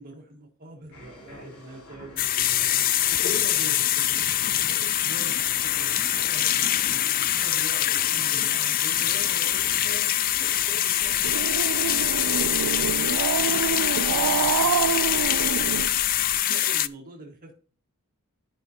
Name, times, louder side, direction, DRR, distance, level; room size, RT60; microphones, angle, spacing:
voice 1, 0.0-2.7 3.0-6.7 7.4-11.4 11.8-15.3 16.3-17.5, right 1 dB, 40° right, 0 dB, 1.7 m, -44 dB
sound 1, 0.9-16.3, equal, 85° left, 3.2 m, -46 dB
sound 2, 2.2-16.9, left 12 dB, 40° left, 0.3 m, -24 dB
Growling, 11.0-16.4, right 7 dB, 80° right, 0.4 m, -27 dB
13.5 x 5.3 x 2.8 m, 0.38 s
head